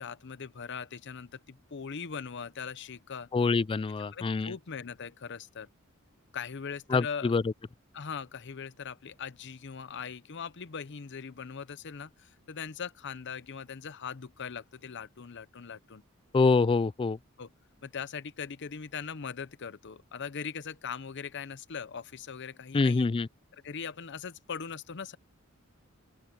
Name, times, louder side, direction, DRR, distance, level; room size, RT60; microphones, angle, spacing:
voice 1, 0.0-3.3 4.0-5.7 6.3-7.3 7.9-16.0 17.4-17.5 17.8-23.1 23.5-25.2, left 6 dB, 55° left, 0.7 m, -40 dB
voice 2, 3.3-4.5 6.9-7.4 16.3-17.2 22.7-23.3, left 4 dB, 25° left, 0.3 m, -25 dB
open air
head